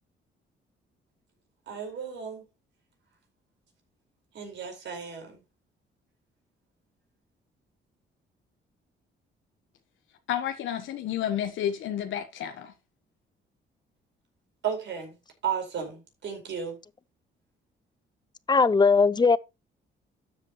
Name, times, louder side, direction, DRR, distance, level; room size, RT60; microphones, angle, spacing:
voice 1, 1.7-2.4 4.3-5.4 14.6-15.2 15.4-16.8, right 7 dB, 70° right, 4.7 m, -34 dB
voice 2, 10.3-12.7, left 10 dB, 75° left, 1.1 m, -31 dB
voice 3, 18.5-19.4, left 4 dB, 20° left, 0.6 m, -19 dB
12.5 x 7.6 x 3.0 m
cardioid pair, 90°, 20 cm